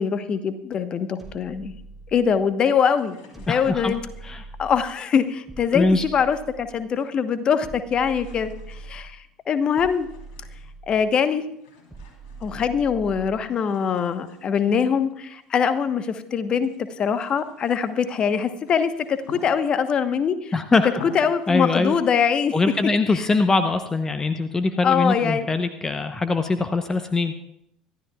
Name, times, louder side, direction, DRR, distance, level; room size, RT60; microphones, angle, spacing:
voice 1, 0.0-1.7 2.1-4.0 4.6-10.1 10.9-11.4 12.4-16.7 17.0-20.5 20.8-22.5 23.1-23.2 24.8-25.5, left 7 dB, 40° left, 11 dB, 1.1 m, -23 dB
sound 1, 1.2-2.5 3.3-5.0 5.5-6.9 7.6-9.2 9.8-11.2 11.9-13.5, right 3 dB, 10° right, 3.4 m, -42 dB
sound 2, 2.9-4.2 5.1-6.6 6.8-7.5 7.8-10.9 11.5-13.1 13.5-16.1 16.5-20.0 20.5-20.6 20.9-21.6, left 5 dB, 60° left, 3.4 m, -48 dB
voice 2, 3.5-3.9 4.2-4.4 5.7-6.0 20.5-20.9 21.5-21.9 22.5-27.3, left 3 dB, 20° left, 9 dB, 0.8 m, -22 dB
25.0 x 12.5 x 2.3 m, 0.78 s
figure-of-eight pair, 65°, 2 cm